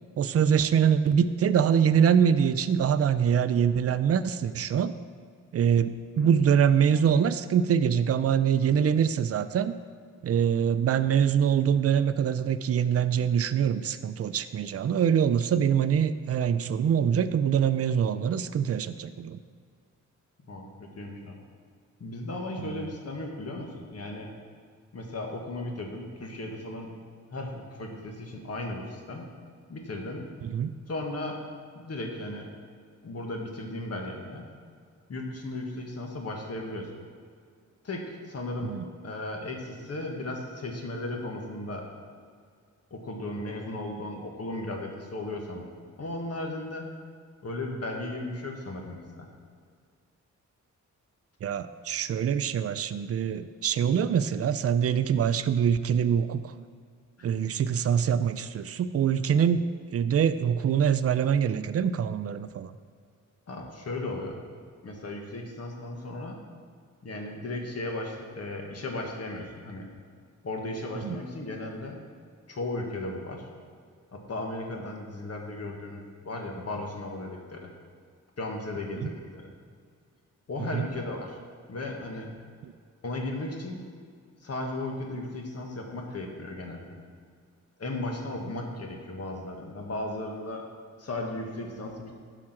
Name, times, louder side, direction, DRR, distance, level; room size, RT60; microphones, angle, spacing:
voice 1, 0.2-4.9 5.5-9.7 10.2-19.4 22.6-22.9 30.4-30.7 38.6-38.8 51.4-56.5 57.2-59.6 59.9-62.7 71.0-71.2 79.0-79.1 80.7-80.9, right 8 dB, 50° right, 12 dB, 0.5 m, -24 dB
voice 2, 20.5-21.4 22.0-24.3 24.9-26.9 27.3-29.3 29.7-30.3 30.9-31.4 31.7-32.5 33.0-34.5 35.1-36.9 37.8-38.7 39.0-41.8 42.9-45.7 46.0-46.9 47.4-49.3 57.2-57.3 63.5-64.4 64.8-66.4 67.0-69.9 70.4-72.0 72.5-73.4 74.1-77.7 78.4-79.5 80.5-81.4 81.7-82.3 83.0-83.9 84.4-87.0 87.8-90.6 91.0-92.1, left 2 dB, 50° left, 1 dB, 1.6 m, -36 dB
12.0 x 4.9 x 6.0 m, 2.1 s
wide cardioid pair, 115°, 31 cm